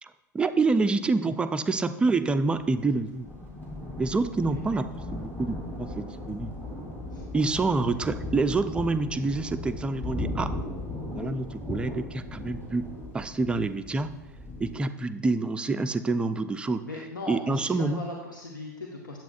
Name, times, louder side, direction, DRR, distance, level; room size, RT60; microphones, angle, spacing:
voice 1, 0.0-3.3 4.0-6.5 7.3-10.5 11.1-12.9 13.1-14.1 14.6-16.9 17.3-18.0, right 3 dB, 10° right, 11 dB, 0.3 m, -27 dB
Thunder, 2.5-14.9, left 1 dB, 15° left, 2.1 m, -37 dB
voice 2, 16.9-19.2, left 2 dB, 80° left, -1 dB, 0.8 m, -38 dB
9.1 x 7.6 x 2.4 m, 1.1 s
figure-of-eight pair, 90°, 10 cm